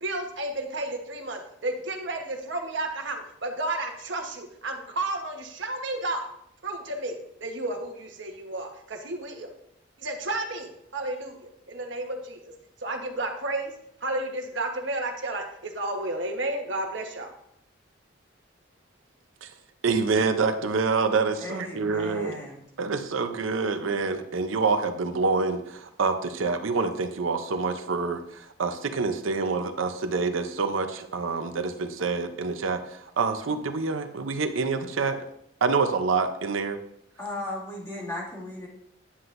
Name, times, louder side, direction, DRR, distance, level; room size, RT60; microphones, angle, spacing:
voice 1, 0.0-6.3 6.6-9.5 10.0-12.4 12.8-13.7 14.0-17.3, right 2 dB, 70° right, 4 dB, 1.1 m, -32 dB
voice 2, 19.8-22.3 22.8-35.2 35.6-36.8, right 4 dB, 90° right, 8 dB, 0.6 m, -27 dB
voice 3, 21.4-22.6 37.2-38.7, left 2 dB, 15° left, -6 dB, 2.2 m, -36 dB
9.6 x 7.7 x 2.6 m, 0.75 s
head